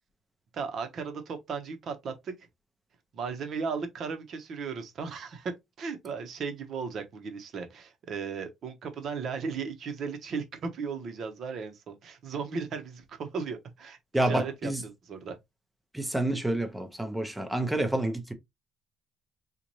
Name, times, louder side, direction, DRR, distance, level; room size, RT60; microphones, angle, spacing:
voice 1, 0.5-2.3 3.1-15.4, right 5 dB, 50° right, 1.0 m, -36 dB
voice 2, 14.1-14.8 15.9-18.3, right 1 dB, 5° right, 0.7 m, -28 dB
4.0 x 2.5 x 3.0 m
cardioid pair, 140°, 0 cm